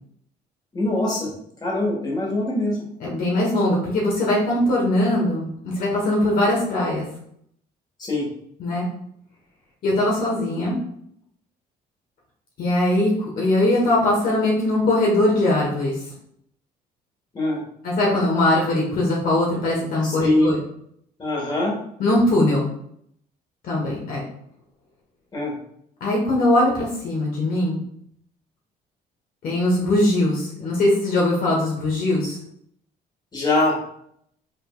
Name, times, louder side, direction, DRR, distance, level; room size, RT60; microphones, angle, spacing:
voice 1, 0.7-1.3 1.6-2.8 8.0-8.3 17.3-17.6 20.0-20.5 21.2-21.7 25.3-25.5 33.3-33.8, left 2 dB, 25° left, -3 dB, 1.7 m, -22 dB
voice 2, 3.0-7.0 8.6-8.8 9.8-10.8 12.6-16.0 17.8-20.6 22.0-22.7 23.6-24.2 26.0-27.8 29.4-32.4, left 1 dB, 60° left, -3 dB, 1.2 m, -21 dB
5.3 x 3.3 x 2.4 m, 0.69 s
cardioid pair, 110°, 17 cm